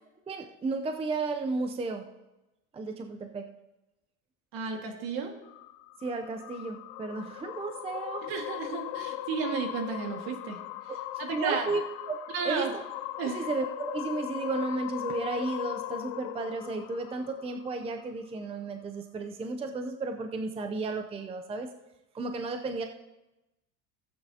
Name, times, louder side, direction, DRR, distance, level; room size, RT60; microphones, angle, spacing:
voice 1, 0.3-2.1 2.7-3.5 6.0-8.3 10.9-11.0 11.3-12.8 13.2-21.7 22.1-22.8, right 3 dB, 15° right, 6 dB, 0.5 m, -33 dB
voice 2, 4.5-5.3 8.2-10.6 11.2-11.7 12.3-12.7 13.2-13.5, right 5 dB, 60° right, 4 dB, 1.9 m, -33 dB
sound 1, 5.4-17.9, left 15 dB, 80° left, 0.6 m, -39 dB
15.5 x 8.7 x 2.8 m, 0.98 s
cardioid pair, 125°, 41 cm